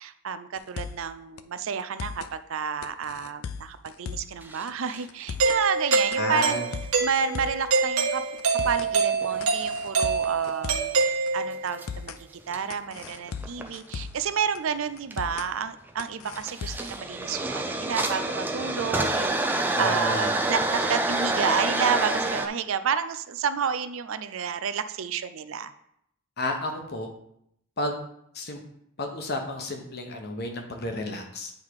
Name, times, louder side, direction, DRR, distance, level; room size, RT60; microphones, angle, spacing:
voice 1, 0.0-6.6 7.0-8.2 8.6-11.1 11.3-12.1 12.5-25.7, right 6 dB, 65° right, 12 dB, 0.4 m, -30 dB
sound 1, 0.6-1.1 1.4-1.5 1.8-2.3 2.8-4.4 4.7-4.8 5.1-5.6 6.1-7.7 8.0-8.1 8.4-8.9 9.4-11.0 11.3-11.4 11.7-12.2 12.7-14.3 14.5-14.6 15.0-15.5 16.0-17.0, left 6 dB, 75° left, 0.4 m, -37 dB
sound 2, 4.4-5.2 5.9-6.0 7.2-7.4 8.0-8.1 8.6-9.4 9.8-10.5 11.8-11.9 12.5-12.6 13.0-14.0 15.1-15.4 15.9-16.0 16.3-22.5, right 2 dB, 10° right, 0.5 m, -28 dB
Doorbell, 5.4-11.7, right 4 dB, 85° right, 1.1 m, -25 dB
voice 2, 6.2-6.7 19.8-20.3 26.4-27.1 27.8-28.0 28.3-28.6 29.0-31.5, left 2 dB, 45° left, 3 dB, 1.0 m, -31 dB
9.0 x 3.7 x 4.8 m, 0.74 s
head